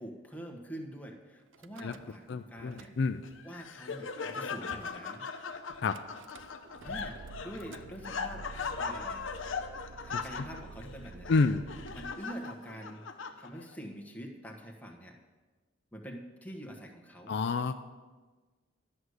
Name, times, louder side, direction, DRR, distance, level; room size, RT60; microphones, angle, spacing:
voice 1, 0.0-2.9 3.4-5.3 6.8-8.4 8.8-9.3 10.0-11.4 11.9-13.1 13.4-15.2 15.9-17.4, equal, 10° left, 1 dB, 1.2 m, -45 dB
Car / Engine starting / Idling, 1.5-2.3 2.6-3.4 4.0-4.1 4.3-4.4 4.7-5.0 5.9-12.1, right 4 dB, 75° right, 0.5 m, -49 dB
voice 2, 2.3-3.2 5.8-5.9 10.1-10.2 11.3-11.6 17.3-17.7, left 4 dB, 60° left, 9 dB, 0.4 m, -28 dB
Laughter, 3.2-13.8, left 5 dB, 85° left, 0.8 m, -39 dB
11.5 x 6.4 x 8.0 m, 1.3 s
head